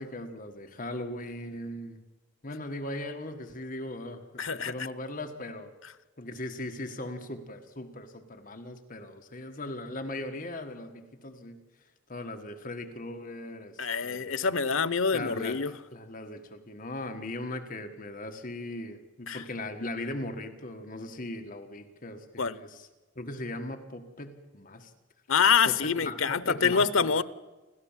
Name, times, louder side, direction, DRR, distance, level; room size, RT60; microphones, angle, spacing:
voice 1, 0.0-2.0 2.4-5.7 6.2-11.6 12.1-14.5 15.1-15.6 15.9-22.9 23.1-24.9 25.6-25.7 26.0-27.1, left 1 dB, 40° left, 6 dB, 1.6 m, -39 dB
voice 2, 4.4-4.7 13.8-15.7 19.3-19.4 22.4-22.6 25.3-27.2, left 6 dB, 85° left, 17 dB, 0.9 m, -26 dB
28.5 x 13.0 x 7.4 m, 1.2 s
head